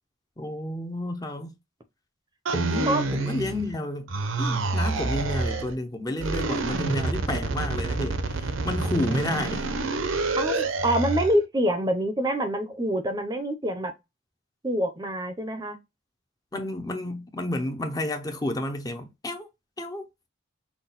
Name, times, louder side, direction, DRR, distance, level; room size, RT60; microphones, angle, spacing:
voice 1, 0.4-1.5 2.5-4.1 4.4-9.7 16.5-19.5 19.8-20.1, left 1 dB, 20° left, 0.7 m, -31 dB
sound 1, 2.5-3.8 4.1-5.7 6.2-11.4, right 3 dB, 75° right, 0.7 m, -28 dB
voice 2, 10.4-13.9 14.6-15.8, right 1 dB, 20° right, 0.6 m, -26 dB
5.9 x 2.2 x 4.0 m
head